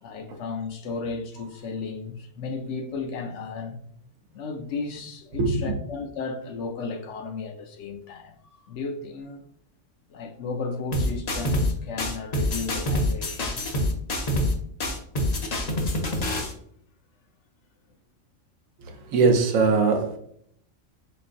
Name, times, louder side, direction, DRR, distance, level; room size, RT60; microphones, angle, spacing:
voice 1, 0.0-3.8 4.3-9.4 10.1-13.6, left 4 dB, 70° left, 0.8 m, -34 dB
voice 2, 5.4-5.8 18.8-20.2, right 4 dB, 85° right, 1.1 m, -21 dB
sound 1, 10.9-11.7 12.0-14.5 14.8-16.5, left 1 dB, 45° left, 0.5 m, -26 dB
5.1 x 2.5 x 2.4 m
omnidirectional pair, 1.4 m